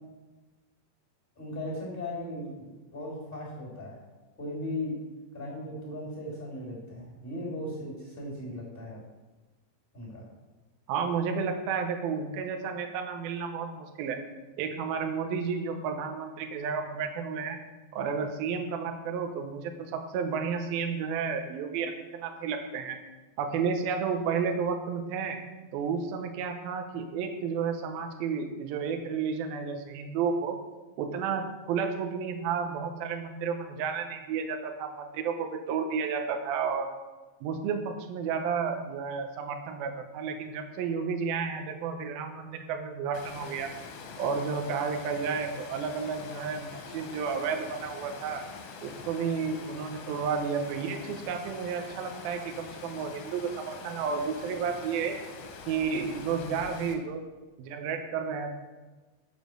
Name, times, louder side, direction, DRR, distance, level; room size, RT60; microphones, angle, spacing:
voice 1, 1.4-4.0 4.4-4.9 5.3-9.0 9.9-10.3, left 1 dB, 15° left, -4 dB, 3.0 m, -37 dB
voice 2, 10.9-14.2 14.6-17.6 17.9-23.0 23.4-25.4 25.7-30.6 31.0-37.0 37.4-43.7 44.2-48.4 48.8-55.1 55.7-57.2 57.6-58.6, right 6 dB, 75° right, 5 dB, 2.5 m, -32 dB
Water, 43.1-56.9, left 5 dB, 70° left, 2.7 m, -44 dB
7.3 x 7.1 x 6.4 m, 1.2 s
omnidirectional pair, 4.9 m